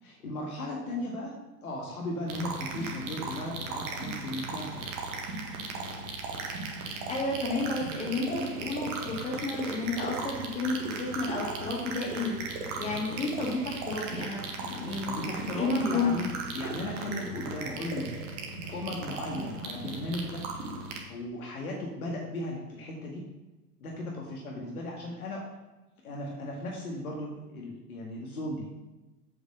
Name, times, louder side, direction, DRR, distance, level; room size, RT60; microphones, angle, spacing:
voice 1, 0.0-4.8 15.0-18.1 18.7-20.4 21.1-23.2 23.8-25.4 26.0-28.7, left 1 dB, 65° left, -1 dB, 2.0 m, -36 dB
sound 1, 2.3-21.0, right 3 dB, 30° right, 1.7 m, -37 dB
voice 2, 7.1-15.2 15.5-16.2, left 3 dB, 15° left, -2 dB, 2.2 m, -31 dB
8.3 x 5.3 x 6.5 m, 1.1 s
figure-of-eight pair, 115°, 47 cm